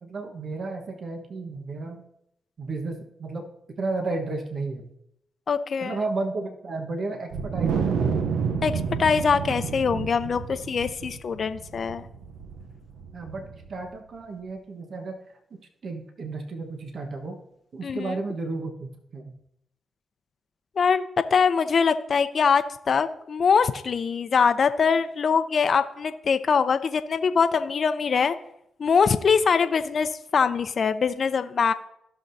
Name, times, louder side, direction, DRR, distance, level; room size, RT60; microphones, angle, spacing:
voice 1, 0.0-2.0 2.6-3.5 3.8-4.9 5.8-8.2 13.1-15.2 15.8-17.4 17.7-19.3, right 3 dB, 60° right, 3 dB, 1.2 m, -33 dB
voice 2, 5.5-6.0 8.6-8.7 9.0-12.1 17.8-18.2 20.8-28.3 28.8-31.7, left 6 dB, 60° left, 10 dB, 0.6 m, -23 dB
Wind, 7.3-13.8, right 6 dB, 80° right, 0.7 m, -30 dB
15.5 x 6.1 x 2.7 m, 0.79 s
hypercardioid pair, 40°, 0 cm